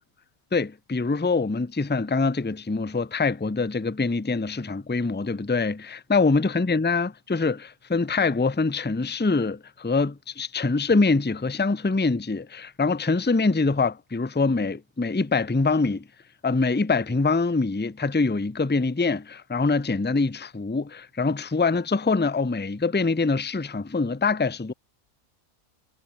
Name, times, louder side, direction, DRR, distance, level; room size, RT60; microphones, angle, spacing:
voice 1, 0.5-16.0 16.4-24.7, left 3 dB, 10° left, 0.5 m, -24 dB
omnidirectional pair, 1.5 m